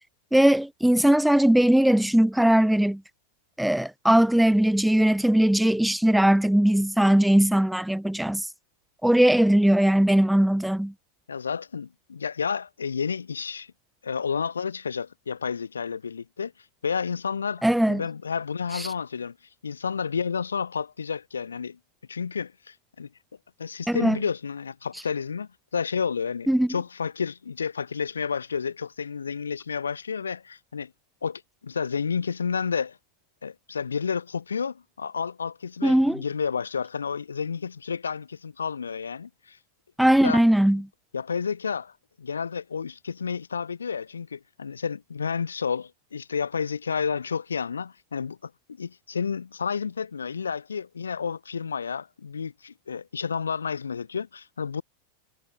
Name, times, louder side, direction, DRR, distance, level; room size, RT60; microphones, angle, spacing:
voice 1, 0.3-3.0 3.6-8.5 9.0-10.9 17.6-18.0 18.7-18.9 23.9-24.2 26.5-26.7 35.8-36.2 40.0-40.8, right 1 dB, ahead, 0.6 m, -20 dB
voice 2, 11.3-13.7 14.0-16.5 16.8-19.4 19.6-21.8 22.1-23.1 23.6-30.9 31.2-33.0 33.4-39.6 40.2-40.4 41.1-41.9 42.2-48.5 48.8-54.8, left 6 dB, 70° left, 0.9 m, -31 dB
figure-of-eight pair, 90°, 0 cm